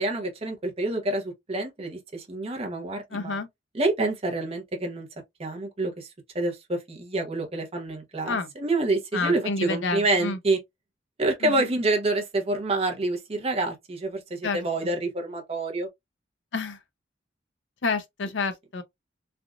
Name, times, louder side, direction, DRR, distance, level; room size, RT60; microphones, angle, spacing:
voice 1, 0.0-3.4 3.7-5.1 5.4-6.1 6.3-10.6 11.2-15.9, right 2 dB, 35° right, 0.8 m, -27 dB
voice 2, 3.1-3.5 8.2-8.5 9.1-10.4 11.4-11.7 14.4-14.6 16.5-16.8 17.8-18.8, left 4 dB, 75° left, 0.6 m, -29 dB
3.4 x 2.4 x 2.3 m
head